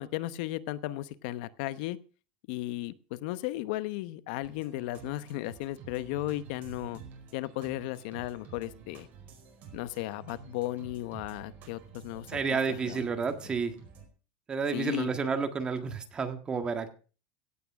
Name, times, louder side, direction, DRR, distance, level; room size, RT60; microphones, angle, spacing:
voice 1, 0.0-2.0 2.5-7.0 7.3-9.1 9.7-12.4 12.7-13.1 14.7-15.1, left 16 dB, 65° left, 15 dB, 0.9 m, -35 dB
sound 1, 4.4-14.1, right 6 dB, 35° right, 4.8 m, -50 dB
voice 2, 12.3-13.7 14.5-16.9, right 5 dB, 20° right, 7 dB, 1.6 m, -30 dB
17.0 x 8.7 x 5.9 m, 0.37 s
supercardioid pair, 160°, 5 cm